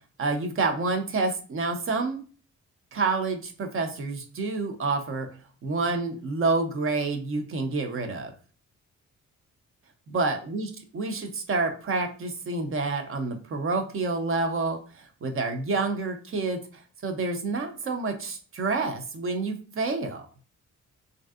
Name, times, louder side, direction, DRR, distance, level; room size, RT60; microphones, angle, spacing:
voice 1, 0.2-2.2 2.9-5.3 5.6-8.3 10.1-20.2, right 3 dB, 45° right, 5 dB, 0.6 m, -28 dB
3.2 x 2.6 x 2.3 m, 0.40 s
cardioid pair, 100°, 31 cm